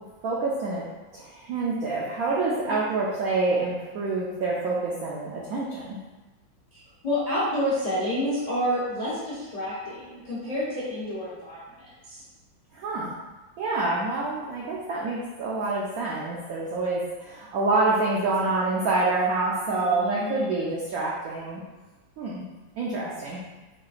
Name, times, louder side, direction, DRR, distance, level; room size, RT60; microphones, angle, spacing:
voice 1, 0.2-0.8 1.1-6.0 12.7-13.1 13.6-21.6 22.2-22.4 22.8-23.4, right 3 dB, 80° right, -4 dB, 0.8 m, -27 dB
voice 2, 6.7-12.2 19.7-20.7, equal, 50° left, -9 dB, 0.4 m, -29 dB
5.8 x 2.4 x 2.4 m, 1.2 s
omnidirectional pair, 2.1 m